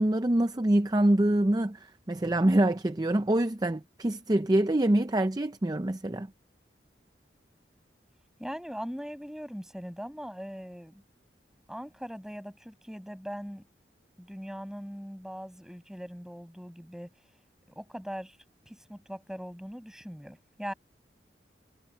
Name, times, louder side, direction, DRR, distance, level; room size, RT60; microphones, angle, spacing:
voice 1, 0.0-6.3, right 1 dB, 20° right, 0.5 m, -25 dB
voice 2, 8.4-11.0 11.7-13.6 14.2-17.1 17.7-18.4 18.7-20.7, equal, 5° right, 7.5 m, -40 dB
head